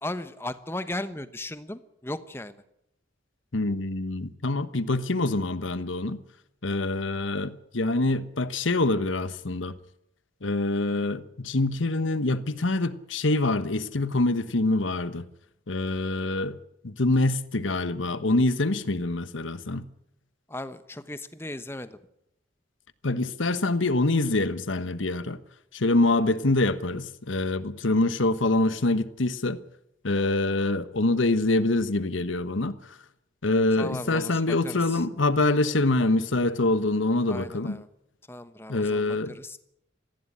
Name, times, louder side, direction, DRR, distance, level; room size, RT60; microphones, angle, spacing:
voice 1, 0.0-2.6 20.5-22.0 33.8-35.0 37.3-37.9 38.3-39.6, left 1 dB, 10° left, 1.1 m, -36 dB
voice 2, 3.5-6.2 6.6-9.7 10.4-15.2 15.7-16.6 16.8-19.8 23.0-25.4 25.7-29.6 30.0-32.8 33.4-37.8 38.7-39.3, left 2 dB, 85° left, 1.2 m, -25 dB
19.0 x 15.5 x 9.9 m
head